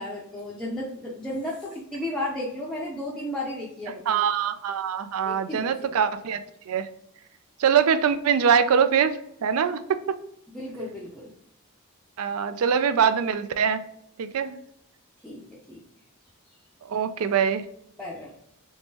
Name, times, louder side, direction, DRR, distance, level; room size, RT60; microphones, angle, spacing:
voice 1, 0.0-4.2 5.2-6.0 10.5-11.3 15.2-15.8 18.0-18.3, left 1 dB, 5° left, -6 dB, 0.5 m, -34 dB
voice 2, 4.1-6.9 7.6-10.2 12.2-13.8 14.2-14.6 16.8-17.6, right 7 dB, 75° right, 11 dB, 0.4 m, -23 dB
3.6 x 3.0 x 2.7 m, 0.75 s
head